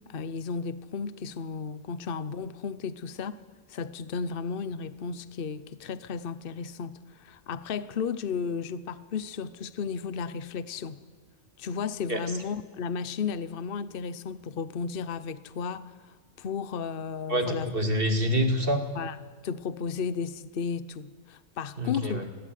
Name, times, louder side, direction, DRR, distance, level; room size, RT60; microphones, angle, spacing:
voice 1, 0.1-3.4 3.7-11.0 11.6-17.7 19.0-19.1 19.4-22.3, left 6 dB, 45° left, 15 dB, 1.0 m, -34 dB
voice 2, 17.3-18.9 21.8-22.3, equal, 40° right, 6 dB, 2.4 m, -26 dB
27.5 x 21.0 x 9.3 m, 1.5 s
omnidirectional pair, 1.5 m